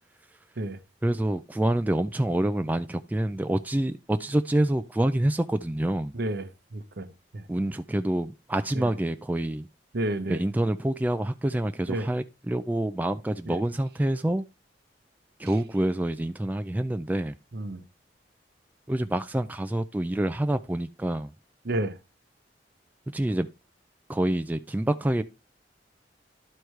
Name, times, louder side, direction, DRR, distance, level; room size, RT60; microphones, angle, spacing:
voice 1, 1.0-6.2 7.5-9.7 10.3-14.4 15.4-17.4 18.9-21.3 23.1-23.5 24.1-25.2, right 1 dB, 10° right, 0.3 m, -27 dB
voice 2, 6.1-7.4 8.7-8.9 9.9-10.4 11.9-12.1 13.5-13.6 17.5-17.8 21.6-22.0, right 1 dB, 60° right, 0.7 m, -31 dB
11.5 x 4.7 x 3.2 m
head